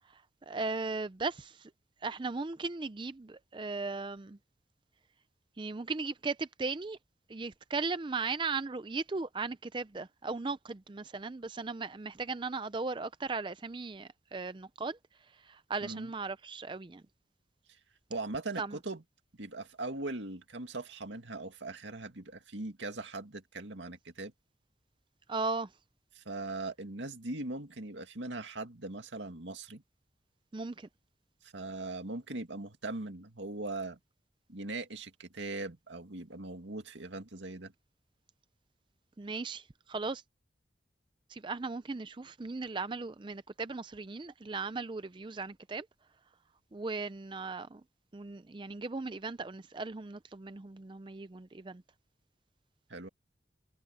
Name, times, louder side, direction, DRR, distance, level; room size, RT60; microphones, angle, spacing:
voice 1, 0.1-1.7 2.0-4.4 5.6-7.0 7.3-15.0 15.4-17.0 18.6-18.8 25.3-25.7 30.5-30.9 39.2-40.2 41.3-45.9 46.7-47.8 48.1-51.8, right 3 dB, 25° right, 0.4 m, -37 dB
voice 2, 18.1-19.0 19.4-24.3 26.1-29.8 31.4-34.0 34.5-37.7 52.9-53.1, right 2 dB, 85° right, 2.2 m, -40 dB
head